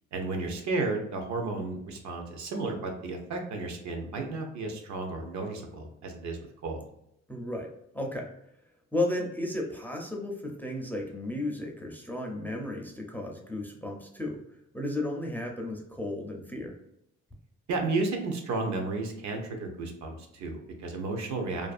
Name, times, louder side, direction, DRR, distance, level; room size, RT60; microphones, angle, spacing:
voice 1, 0.1-6.9 17.7-21.7, right 3 dB, 70° right, 3 dB, 0.6 m, -33 dB
voice 2, 7.3-7.7 7.9-8.3 8.9-14.4 14.7-16.7, left 1 dB, 5° left, 1 dB, 0.4 m, -33 dB
2.4 x 2.3 x 2.4 m, 0.78 s
cardioid pair, 90°, 30 cm